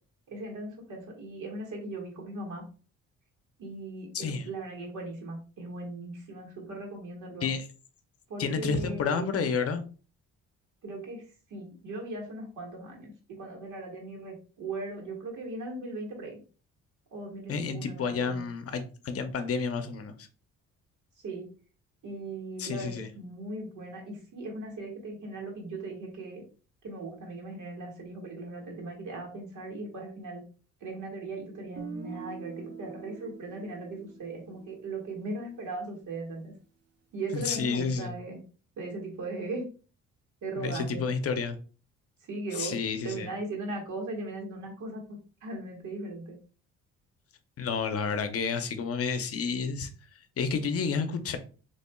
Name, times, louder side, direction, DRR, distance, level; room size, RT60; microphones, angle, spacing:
voice 1, 0.3-2.6 3.6-7.5 8.3-9.3 10.8-11.2 11.5-16.4 17.1-18.4 21.2-21.5 22.0-26.4 26.8-30.4 30.8-36.5 37.1-38.4 38.8-39.6 40.4-41.0 42.3-42.7 43.0-46.4, right 2 dB, 80° right, 1.6 m, -38 dB
voice 2, 4.1-4.5 7.4-7.7 8.4-9.8 17.5-20.3 22.6-23.1 37.3-38.1 40.6-41.6 42.5-43.3 47.6-49.9 50.4-51.4, left 5 dB, 50° left, 0.6 m, -30 dB
Guitar, 31.8-35.7, right 7 dB, 55° right, 0.8 m, -45 dB
4.2 x 3.0 x 2.2 m
cardioid pair, 90°, 30 cm